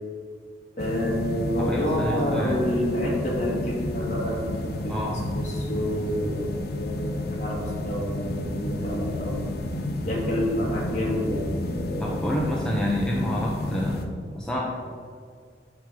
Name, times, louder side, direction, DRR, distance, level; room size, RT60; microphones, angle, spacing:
sound 1, 0.8-14.1, left 1 dB, 60° left, 0.7 m, -31 dB
voice 1, 0.8-4.9 5.3-9.5 10.1-12.2, equal, 40° left, -4 dB, 2.2 m, -28 dB
voice 2, 1.6-2.6 4.9-5.3 12.0-14.0 14.3-14.6, left 1 dB, 5° left, -4 dB, 0.8 m, -28 dB
8.7 x 3.8 x 6.9 m, 2.1 s
head